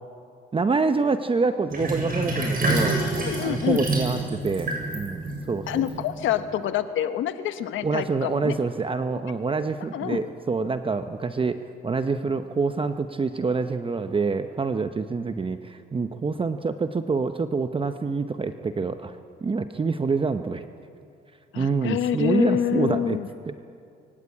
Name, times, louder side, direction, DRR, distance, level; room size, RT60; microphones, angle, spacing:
voice 1, 0.5-3.0 3.4-4.7 4.9-5.8 7.8-19.2 19.4-20.6 21.6-23.2 23.5-23.6, right 4 dB, 25° right, 9 dB, 0.8 m, -26 dB
Sink (filling or washing), 1.7-6.4, right 2 dB, 45° right, 7.7 m, -27 dB
voice 2, 3.2-3.8 5.7-8.5 9.9-10.2 21.5-23.3, left 11 dB, 85° left, 10 dB, 1.2 m, -27 dB
22.5 x 17.5 x 8.5 m, 2.6 s
cardioid pair, 90°, 20 cm